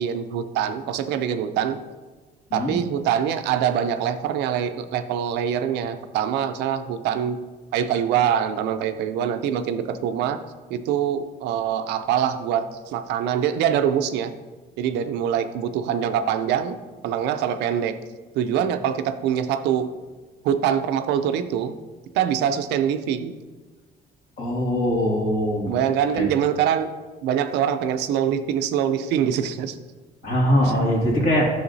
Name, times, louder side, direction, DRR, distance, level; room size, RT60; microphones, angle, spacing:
voice 1, 0.0-1.8 2.5-7.4 7.7-10.4 10.7-14.3 14.8-16.8 17.0-18.0 18.3-19.9 20.4-21.7 22.1-23.3 25.7-26.9 27.2-29.8 30.6-30.7 31.2-31.3, right 9 dB, 85° right, 10 dB, 0.5 m, -24 dB
voice 2, 24.4-25.8 26.1-26.3 30.2-31.5, equal, 55° left, -3 dB, 2.3 m, -22 dB
9.8 x 6.4 x 2.7 m, 1.3 s
cardioid pair, 110°, 17 cm